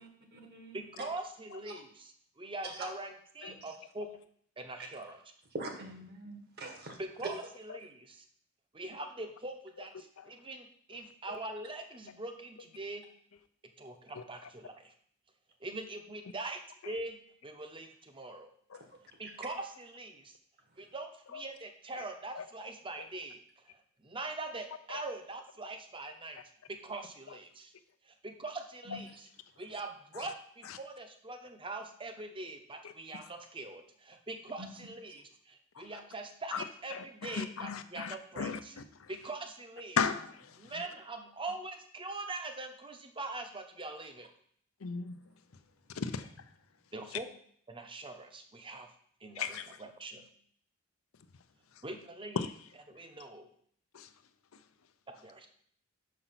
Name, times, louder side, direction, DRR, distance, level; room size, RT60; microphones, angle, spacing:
voice 1, 0.0-0.8 2.6-2.7 3.5-3.6 5.5-7.0 19.2-19.3 28.9-29.0 34.6-34.7, right 2 dB, 50° right, 1.5 m, -44 dB
voice 2, 0.7-4.1 4.6-5.2 7.0-8.2 8.7-13.0 13.8-14.9 15.6-16.6 16.8-18.5 19.2-20.4 20.8-26.4 26.7-27.7 28.0-29.3 29.6-38.7 39.1-40.0 40.6-44.3 46.9-47.3 47.7-48.9 49.2-50.3 51.8-52.4 52.9-53.5 55.1-55.5, right 2 dB, 25° right, 0.8 m, -43 dB
voice 3, 36.9-39.1 40.0-40.7 44.8-45.2 45.9-46.3 49.4-49.7 52.4-52.5 53.9-54.1, left 6 dB, 85° left, 0.6 m, -36 dB
5.8 x 5.3 x 5.7 m
head